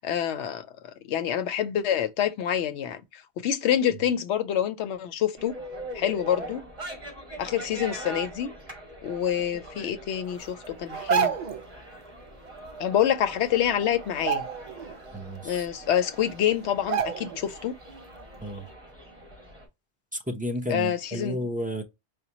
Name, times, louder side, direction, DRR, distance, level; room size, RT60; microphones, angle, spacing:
voice 1, 0.0-5.5 5.9-6.6 7.4-8.5 9.0-11.4 12.8-14.5 15.4-17.7 20.7-21.4, left 10 dB, 85° left, 0.9 m, -27 dB
sound 1, 5.3-19.7, right 1 dB, 30° right, 1.9 m, -42 dB
sound 2, 10.9-11.6 13.1-13.2 13.5-13.7 14.1-15.0 15.4-15.5 16.2-16.3 16.9-17.5 17.9-18.0, right 8 dB, 55° right, 0.5 m, -28 dB
voice 2, 15.1-15.7 18.4-18.7 20.1-21.8, equal, 10° right, 0.7 m, -32 dB
5.0 x 2.2 x 2.8 m
omnidirectional pair, 1.1 m